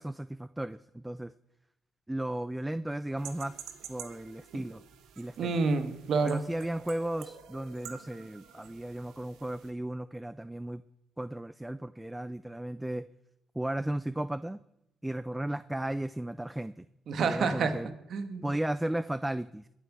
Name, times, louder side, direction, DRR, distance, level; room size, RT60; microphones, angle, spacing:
voice 1, 0.0-1.3 2.1-3.6 3.9-4.8 5.2-5.5 6.2-10.8 11.2-13.0 13.6-14.6 15.0-16.9 17.2-17.9 18.4-19.7, right 1 dB, 10° right, 15 dB, 0.4 m, -35 dB
sound 1, 3.2-9.7, right 8 dB, 85° right, 1.3 m, -49 dB
voice 2, 5.4-6.4 17.1-17.7 18.1-18.5, right 4 dB, 65° right, 9 dB, 1.6 m, -28 dB
21.5 x 8.0 x 6.1 m, 0.83 s
cardioid pair, 90°, 0 cm